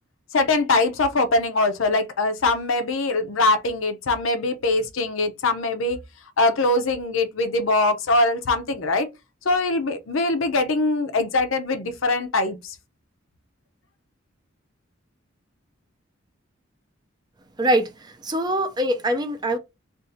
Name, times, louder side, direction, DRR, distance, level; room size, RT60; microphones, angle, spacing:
voice 1, 0.3-6.0 6.4-9.1 9.4-12.7, left 2 dB, 75° left, 0.6 m, -22 dB
voice 2, 17.6-19.6, right 1 dB, 20° right, 0.4 m, -23 dB
2.6 x 2.5 x 3.7 m
head